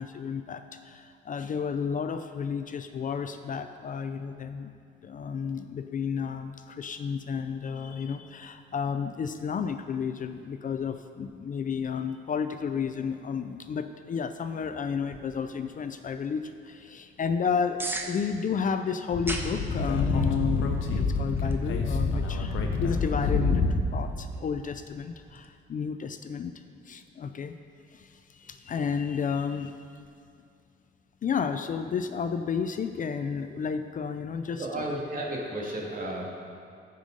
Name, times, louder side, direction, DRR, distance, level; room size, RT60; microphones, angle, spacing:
voice 1, 0.0-4.7 5.0-23.6 23.9-26.5 26.9-27.5 27.9-29.7 31.2-35.0, left 6 dB, 40° left, 9 dB, 0.5 m, -32 dB
sound 1, 14.9-25.5, right 1 dB, 10° right, 1.0 m, -44 dB
Speech / Wind, 19.1-24.0, left 3 dB, 80° left, 1.0 m, -27 dB
voice 2, 34.6-36.3, right 1 dB, 45° right, -2 dB, 2.2 m, -33 dB
13.5 x 5.5 x 5.2 m, 2.3 s
cardioid pair, 90°, 20 cm